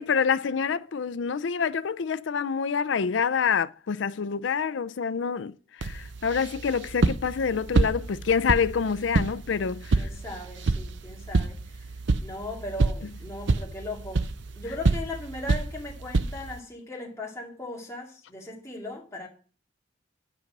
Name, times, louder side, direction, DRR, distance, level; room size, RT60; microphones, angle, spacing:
voice 1, 0.0-10.1, left 6 dB, 75° left, 0.5 m, -27 dB
sound 1, 5.8-16.6, right 3 dB, 70° right, 0.6 m, -28 dB
voice 2, 10.0-11.9 12.2-14.3 14.6-19.3, left 2 dB, 15° left, 2.4 m, -38 dB
10.5 x 5.3 x 6.0 m
head